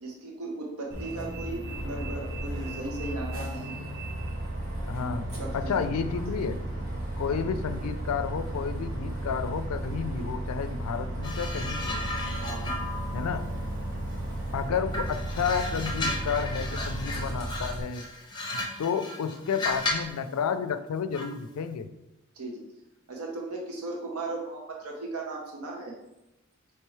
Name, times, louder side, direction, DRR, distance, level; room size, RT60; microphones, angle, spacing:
voice 1, 0.0-3.8 5.4-6.2 7.4-7.5 12.4-12.8 22.3-22.6 23.1-26.0, right 2 dB, 85° right, 0 dB, 0.7 m, -37 dB
Bus, 0.9-17.8, right 1 dB, 65° right, 1.2 m, -34 dB
voice 2, 4.9-6.6 7.2-12.1 13.1-13.5 14.5-18.1 18.8-21.9, left 6 dB, 90° left, 10 dB, 0.4 m, -31 dB
sound 1, 11.2-14.5 14.9-20.2 21.1-21.4, left 2 dB, 20° left, 0.6 m, -35 dB
4.5 x 3.3 x 3.1 m, 0.95 s
head